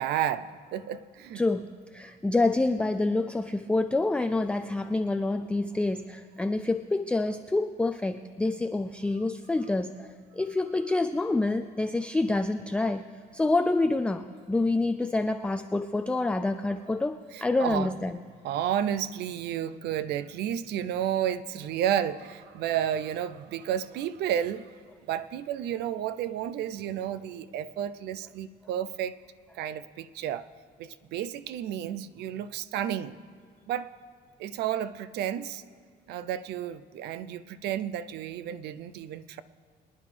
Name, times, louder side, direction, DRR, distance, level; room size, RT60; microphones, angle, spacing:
voice 1, 0.0-1.4 17.3-17.9 18.4-24.7 25.1-29.2 29.6-30.5 30.8-33.2 33.7-34.0 34.4-35.6 36.1-39.4, right 10 dB, 75° right, 0.5 m, -31 dB
voice 2, 1.4-10.1 10.3-13.0 13.3-18.1, left 2 dB, 5° left, 0.3 m, -27 dB
24.5 x 9.9 x 3.4 m
cardioid pair, 110°, 17 cm